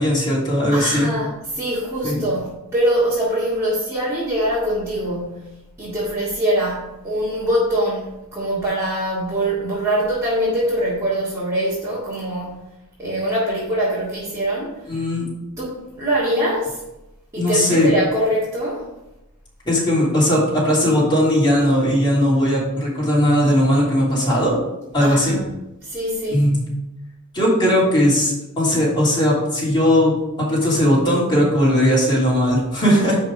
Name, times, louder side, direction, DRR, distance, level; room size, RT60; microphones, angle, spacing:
voice 1, 0.0-1.1 2.0-2.2 14.9-15.2 17.4-17.9 19.6-24.6 24.9-25.4 26.3-26.6 27.3-30.1 30.4-33.2, equal, 20° left, -6 dB, 3.1 m, -18 dB
voice 2, 0.7-12.6 13.0-15.0 15.6-16.8 17.3-18.9 25.0-25.5 25.8-26.5, right 1 dB, 10° right, -8 dB, 2.0 m, -23 dB
10.5 x 3.8 x 4.9 m, 0.94 s
head